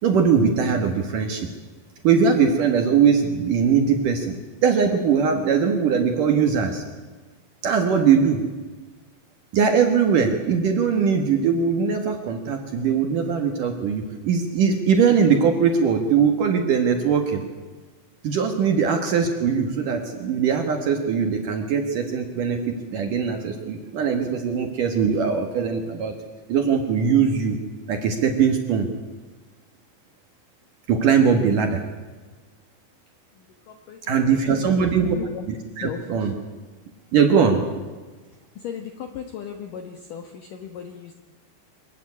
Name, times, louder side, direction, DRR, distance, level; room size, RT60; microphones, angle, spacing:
voice 1, 0.0-1.5 2.0-4.4 4.6-6.8 7.6-8.4 9.5-17.4 18.2-26.1 26.5-27.6 27.9-28.9 30.9-31.8 34.1-35.1 35.5-36.3 37.1-37.6, right 6 dB, 60° right, 5 dB, 2.4 m, -21 dB
voice 2, 33.7-35.4 35.8-36.3 38.6-41.1, left 8 dB, 70° left, 6 dB, 2.0 m, -37 dB
24.5 x 15.0 x 9.7 m, 1.3 s
omnidirectional pair, 5.5 m